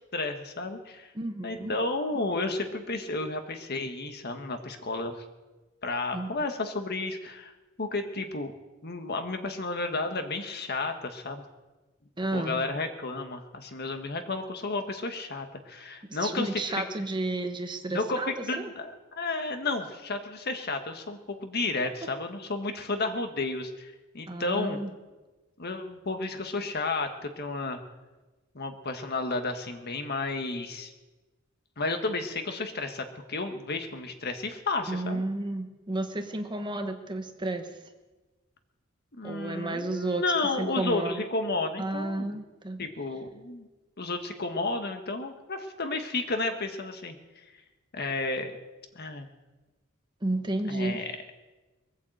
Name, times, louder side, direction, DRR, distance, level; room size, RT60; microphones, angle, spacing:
voice 1, 0.1-1.1 1.4-5.2 5.8-7.5 7.8-8.5 8.8-11.4 12.3-16.8 17.9-24.8 25.6-27.8 28.5-30.9 31.8-35.2 39.1-42.4 42.8-43.7 44.0-47.4 47.9-48.5 48.9-49.3 50.7-51.1, left 3 dB, 50° left, 6 dB, 1.5 m, -32 dB
voice 2, 1.1-1.7 6.1-6.3 12.2-12.6 16.1-18.7 22.0-22.1 24.3-24.9 34.9-37.7 39.2-40.2 40.6-41.2 41.8-42.8 50.2-51.1, right 2 dB, 20° right, 6 dB, 1.1 m, -32 dB
21.5 x 8.3 x 8.0 m, 1.2 s
head